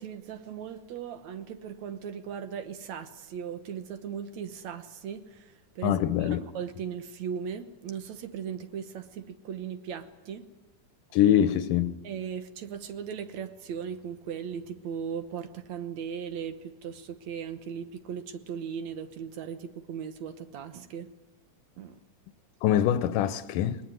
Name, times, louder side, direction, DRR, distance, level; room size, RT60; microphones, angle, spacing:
voice 1, 0.0-10.5 12.0-21.1 21.8-22.0, right 7 dB, 65° right, 2.3 m, -38 dB
voice 2, 5.8-6.4 11.1-11.9 22.6-23.8, left 10 dB, 90° left, 2.5 m, -24 dB
20.5 x 20.5 x 9.3 m
omnidirectional pair, 3.6 m